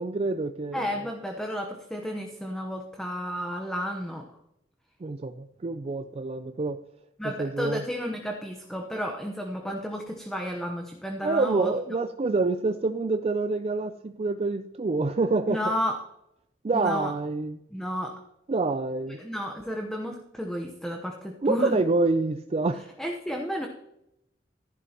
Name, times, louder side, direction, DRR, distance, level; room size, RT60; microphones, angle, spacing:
voice 1, 0.0-1.0 5.0-6.8 7.4-7.8 11.2-15.6 16.6-17.6 18.5-19.2 21.4-22.9, right 3 dB, 35° right, 8 dB, 0.4 m, -27 dB
voice 2, 0.7-4.3 7.2-11.7 15.5-16.0 16.7-17.1 17.7-18.2 19.1-21.8 23.0-23.7, equal, 5° left, 2 dB, 1.0 m, -32 dB
14.5 x 11.0 x 2.9 m, 0.83 s
head